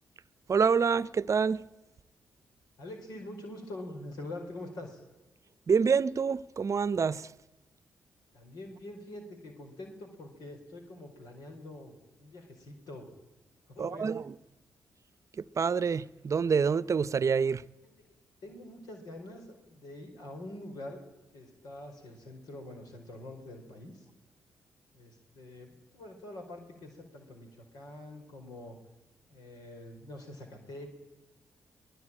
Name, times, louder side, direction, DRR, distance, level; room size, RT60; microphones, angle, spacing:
voice 1, 0.5-1.6 5.7-7.3 13.8-14.3 15.5-17.6, right 6 dB, 45° right, 0.8 m, -27 dB
voice 2, 2.8-5.0 8.3-13.1 13.7-14.2 17.8-17.9 18.4-21.0 21.3-24.1 24.9-28.8 29.3-30.9, left 1 dB, 75° left, 4.7 m, -45 dB
23.0 x 19.0 x 8.9 m
hypercardioid pair, 40°, 7 cm